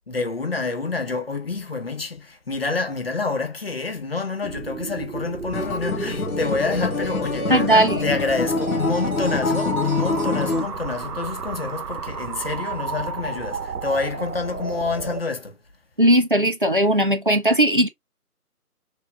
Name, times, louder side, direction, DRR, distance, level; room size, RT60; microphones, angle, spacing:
voice 1, 0.1-15.6, left 4 dB, 40° left, 1.0 m, -27 dB
sound 1, 4.4-15.2, right 5 dB, 75° right, 1.0 m, -32 dB
Acoustic guitar, 5.5-10.7, left 4 dB, 65° left, 1.1 m, -26 dB
voice 2, 7.5-8.1 16.0-17.9, right 1 dB, 35° right, 0.6 m, -18 dB
6.0 x 2.6 x 2.2 m
figure-of-eight pair, 170°, 46 cm